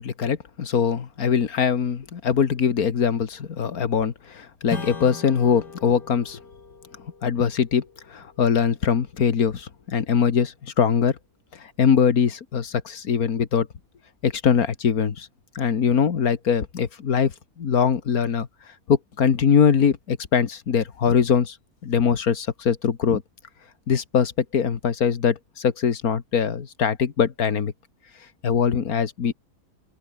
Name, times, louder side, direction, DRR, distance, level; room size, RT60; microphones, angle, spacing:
voice 1, 0.0-6.4 7.2-11.2 11.6-13.7 14.2-15.3 15.6-18.5 18.9-21.6 21.8-23.2 23.9-27.7 28.4-29.3, left 7 dB, 60° left, 2.0 m, -22 dB
Strum, 4.7-9.6, left 4 dB, 90° left, 4.3 m, -40 dB
open air
omnidirectional pair, 1.8 m